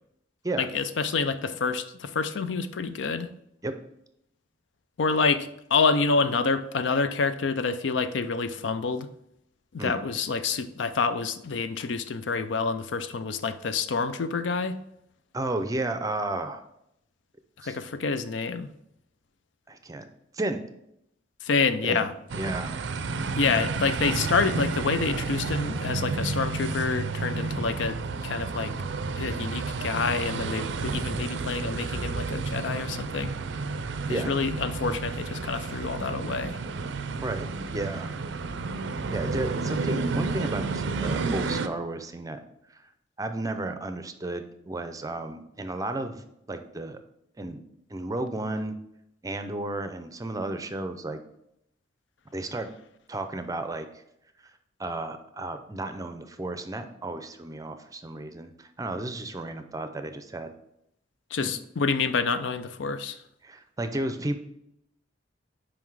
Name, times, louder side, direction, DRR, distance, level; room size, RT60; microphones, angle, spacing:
voice 1, 0.6-3.3 5.0-9.1 9.7-14.8 17.6-18.7 21.4-22.1 23.4-28.7 29.2-33.3 34.1-36.6 61.3-63.2, left 4 dB, 70° left, 11 dB, 0.5 m, -27 dB
voice 2, 15.3-16.6 17.6-17.8 19.7-20.0 20.3-20.6 21.8-23.1 34.1-34.3 37.2-38.1 39.1-42.4 42.7-42.8 43.2-47.0 47.4-47.6 47.9-48.8 49.2-51.2 52.3-52.7 53.1-53.9 54.8-60.5 63.4-64.4, right 2 dB, 20° right, 8 dB, 0.5 m, -33 dB
sound 1, 22.3-41.7, right 4 dB, 70° right, 0.4 m, -31 dB
5.8 x 4.9 x 4.7 m, 0.78 s
head